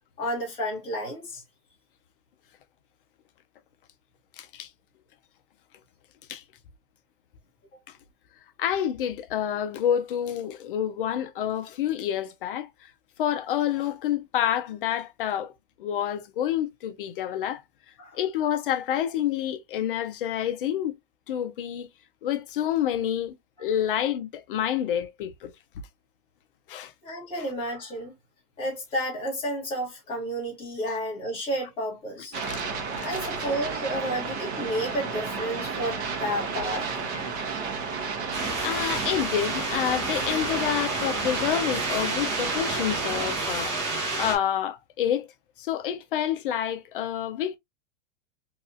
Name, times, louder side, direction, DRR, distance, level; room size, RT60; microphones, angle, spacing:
voice 1, 0.2-1.4 18.0-18.2 27.0-28.1 28.6-32.3 33.0-37.0 37.5-37.6, equal, 15° left, 1.3 m, -31 dB
voice 2, 4.4-4.7 6.3-6.4 7.9-8.0 8.6-12.9 13.2-15.5 15.8-17.6 18.1-21.0 21.3-21.9 22.2-23.3 23.6-25.5 26.7-26.9 27.4-27.5 30.9-31.0 32.3-32.7 33.0-33.2 38.6-43.8 44.2-45.3 45.6-47.6, left 10 dB, 45° left, 0.4 m, -28 dB
sound 1, 32.3-43.4, right 5 dB, 60° right, 1.1 m, -32 dB
sound 2, 38.3-44.4, right 2 dB, 35° right, 1.1 m, -30 dB
3.0 x 2.9 x 2.3 m
supercardioid pair, 165°, 38 cm